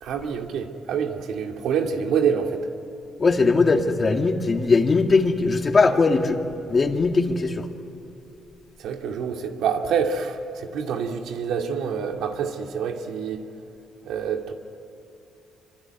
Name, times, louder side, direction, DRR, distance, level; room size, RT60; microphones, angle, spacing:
voice 1, 0.0-2.7 8.8-13.5 14.0-14.5, right 6 dB, 80° right, 4 dB, 2.3 m, -26 dB
voice 2, 3.2-6.4 6.7-7.7, left 4 dB, 35° left, 5 dB, 2.1 m, -20 dB
26.0 x 24.5 x 9.4 m, 2.7 s
cardioid pair, 90°, 0 cm